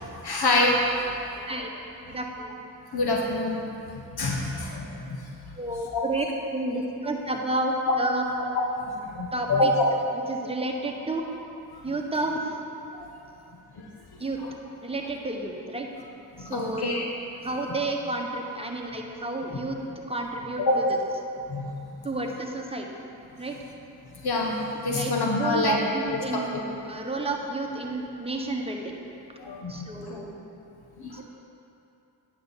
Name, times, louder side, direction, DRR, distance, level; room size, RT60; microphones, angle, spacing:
voice 1, 0.0-1.5 2.9-3.6 3.9-5.2 5.9-6.0 8.8-9.7 11.7-11.8 12.9-13.1 13.8-13.9 14.4-14.5 16.4-17.1 20.7-20.8 21.5-22.0 24.2-25.8 26.3-26.4 29.4-30.2 31.0-31.2, left 2 dB, 55° left, -1 dB, 1.2 m, -27 dB
voice 2, 2.1-2.5 5.6-8.2 9.3-9.7 10.3-11.2 11.8-12.4 14.2-14.4 14.8-15.9 16.4-16.9 17.4-19.8 20.1-20.6 22.0-22.9 23.4-23.6 24.9-25.1 25.4-26.5 26.9-29.0 29.7-30.4 31.1-31.2, right 2 dB, 15° right, 1 dB, 1.1 m, -30 dB
9.2 x 5.8 x 4.1 m, 2.8 s
supercardioid pair, 45°, 45 cm